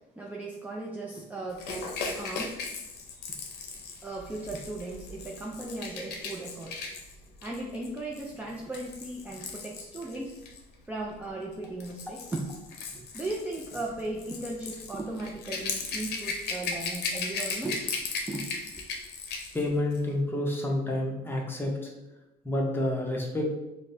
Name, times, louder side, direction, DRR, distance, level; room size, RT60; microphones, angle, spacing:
voice 1, 0.2-2.6 3.2-3.3 4.0-6.8 7.4-10.4 10.9-12.7 12.9-18.0 18.3-18.4, right 2 dB, 10° right, -2 dB, 0.4 m, -37 dB
Rattle / Rattle (instrument), 1.6-10.6 11.5-19.6 19.9-20.1, left 4 dB, 75° left, 0.6 m, -37 dB
voice 2, 19.5-21.9 22.4-23.5, left 1 dB, 15° left, -1 dB, 0.7 m, -29 dB
5.0 x 2.1 x 2.6 m, 1.0 s
cardioid pair, 110°, 17 cm